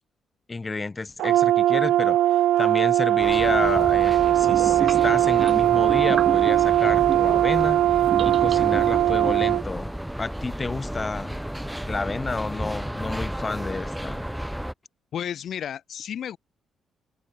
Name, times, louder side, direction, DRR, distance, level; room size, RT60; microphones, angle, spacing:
voice 1, 0.5-9.9 10.2-11.4 11.8-14.3, left 3 dB, 25° left, 5.4 m, -30 dB
Brass instrument, 1.2-9.6, right 13 dB, 85° right, 0.5 m, -20 dB
sound 1, 3.2-14.7, equal, 5° right, 1.4 m, -33 dB
sound 2, 4.4-7.5 8.0-9.6, right 7 dB, 50° right, 1.8 m, -32 dB
voice 2, 15.1-16.4, left 9 dB, 65° left, 1.0 m, -32 dB
cardioid pair, 90°, 0 cm